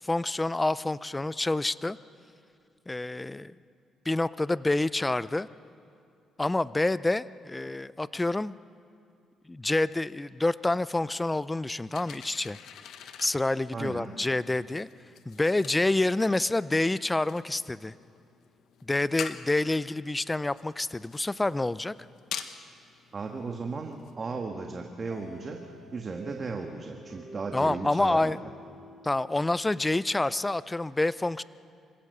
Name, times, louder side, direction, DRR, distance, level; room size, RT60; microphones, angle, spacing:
voice 1, 0.0-2.0 2.9-3.5 4.1-5.5 6.4-8.6 9.5-12.6 13.2-14.9 15.3-17.9 18.8-21.9 27.5-28.4 29.0-31.4, left 2 dB, 15° left, 17 dB, 0.5 m, -27 dB
sound 1, 11.9-24.2, left 8 dB, 75° left, 1.2 m, -46 dB
voice 2, 13.7-14.1 23.1-25.6 25.9-28.5, right 4 dB, 35° right, 3 dB, 1.6 m, -36 dB
sound 2, 25.1-29.8, right 1 dB, 45° left, 4.8 m, -49 dB
26.0 x 16.5 x 6.8 m, 2.6 s
cardioid pair, 95°, 0 cm